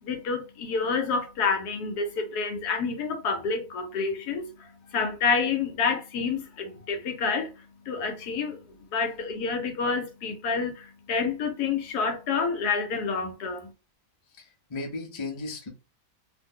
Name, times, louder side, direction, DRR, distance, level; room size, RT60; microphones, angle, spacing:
voice 1, 0.0-13.7, left 5 dB, 70° left, 1.2 m, -28 dB
voice 2, 14.4-15.7, left 3 dB, 40° left, 0.4 m, -35 dB
3.3 x 2.1 x 3.6 m
omnidirectional pair, 1.8 m